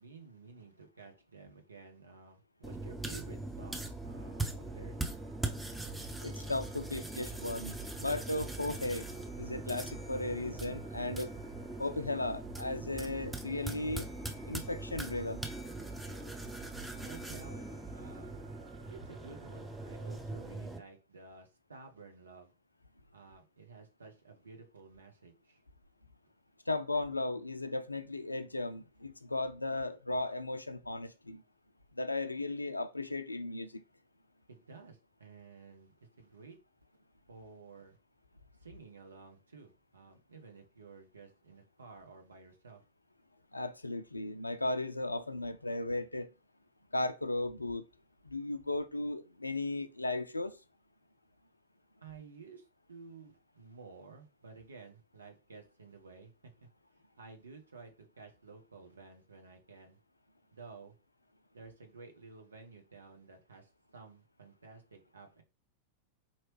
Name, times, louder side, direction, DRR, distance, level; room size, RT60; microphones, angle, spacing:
voice 1, 0.0-5.0 17.0-18.4 18.9-22.5 23.1-25.6 34.5-36.6 37.3-38.0 38.6-42.8 52.0-56.7 57.2-60.0 60.5-60.9 61.5-65.4, right 4 dB, 75° right, 0.9 m, -53 dB
sound 1, 2.6-20.8, right 2 dB, 5° right, 0.7 m, -41 dB
sound 2, 3.8-20.6, right 8 dB, 55° right, 0.6 m, -59 dB
voice 2, 6.2-9.1 9.4-11.3 11.8-14.1 14.5-15.4 26.7-31.4 32.0-33.8 43.5-46.3 46.9-47.8 48.2-50.5, left 2 dB, 85° left, 0.3 m, -36 dB
4.3 x 3.0 x 3.1 m
figure-of-eight pair, 90°, 0 cm